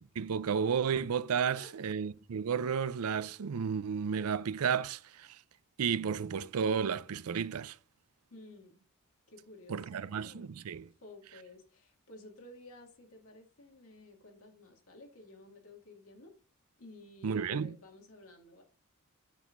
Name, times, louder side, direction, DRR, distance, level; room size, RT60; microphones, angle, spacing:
voice 1, 0.2-5.4 5.8-7.8 9.7-10.9 17.2-17.7, right 6 dB, 75° right, 0.5 m, -32 dB
voice 2, 8.3-8.8 9.3-10.5 11.0-16.3 16.8-18.6, left 2 dB, 75° left, 2.3 m, -53 dB
8.2 x 6.3 x 2.5 m
head